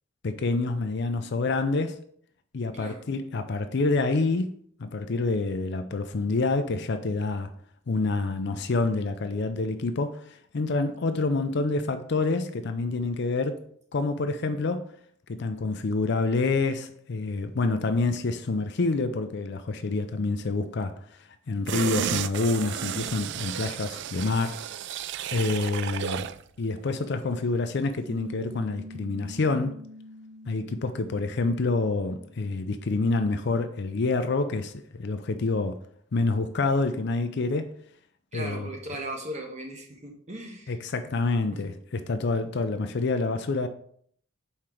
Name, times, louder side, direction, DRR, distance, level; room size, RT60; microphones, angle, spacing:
voice 1, 0.2-2.0 2.5-4.5 4.8-7.5 7.9-13.6 13.9-14.9 15.3-21.0 21.5-24.6 25.3-26.3 26.6-29.8 30.5-35.8 36.1-37.7 38.3-38.7 40.7-43.7, left 3 dB, 55° left, 0.5 m, -27 dB
sound 1, 21.7-26.4 26.8-26.9, right 9 dB, 55° right, 0.3 m, -33 dB
Piano, 28.1-33.2, left 2 dB, 75° right, 0.9 m, -46 dB
voice 2, 38.3-40.8 41.5-41.6, right 1 dB, 35° right, 1.3 m, -37 dB
5.7 x 4.4 x 4.9 m
head